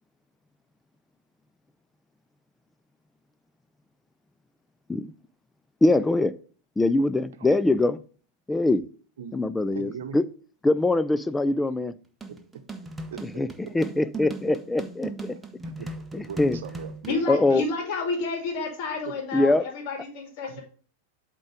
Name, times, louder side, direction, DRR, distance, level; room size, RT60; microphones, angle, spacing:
voice 1, 5.8-6.3 6.8-8.0 8.5-8.8 9.3-10.3 10.6-11.9 13.4-13.5 13.7-15.1 16.1-16.6 17.3-17.6 19.3-19.6, left 2 dB, 10° left, 14 dB, 0.4 m, -22 dB
voice 2, 9.7-10.2 13.1-13.2 15.3-15.5 15.8-17.6 20.4-20.6, right 7 dB, 65° right, 9 dB, 0.9 m, -39 dB
sound 1, 12.2-17.2, right 2 dB, 10° right, 1.0 m, -38 dB
voice 3, 17.1-20.6, left 3 dB, 50° left, 2 dB, 2.4 m, -30 dB
7.8 x 3.8 x 4.9 m, 0.41 s
figure-of-eight pair, 90°, 0 cm